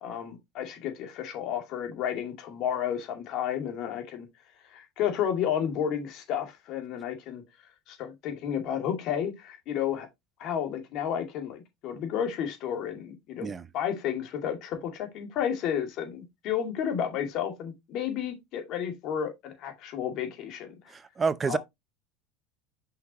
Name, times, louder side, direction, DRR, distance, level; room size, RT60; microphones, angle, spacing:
voice 1, 0.0-4.3 4.7-7.4 7.9-10.1 10.4-20.7 21.5-21.6, left 9 dB, 55° left, 2.3 m, -32 dB
voice 2, 20.9-21.6, right 5 dB, 25° right, 0.6 m, -28 dB
5.8 x 5.7 x 3.0 m
supercardioid pair, 95°, 0 cm